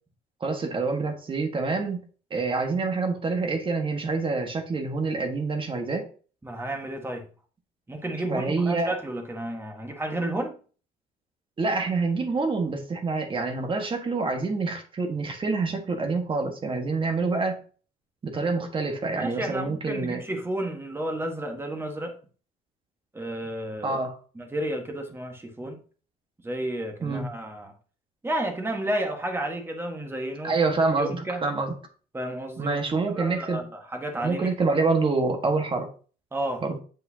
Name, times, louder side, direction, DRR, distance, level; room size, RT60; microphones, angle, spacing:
voice 1, 0.4-2.0 2.3-6.0 8.3-8.9 11.6-17.6 18.2-20.2 23.8-24.2 27.0-27.3 30.4-31.7 32.6-33.6 34.2-35.9 36.6-36.8, right 3 dB, 30° right, 1.5 m, -26 dB
voice 2, 6.4-7.2 7.9-10.6 19.1-22.2 23.1-24.0 24.3-25.8 26.4-27.7 28.2-30.5 31.0-31.4 32.1-32.8 33.1-34.5 36.3-36.6, right 1 dB, 15° right, 1.5 m, -31 dB
7.8 x 5.6 x 2.8 m
cardioid pair, 110°, 17 cm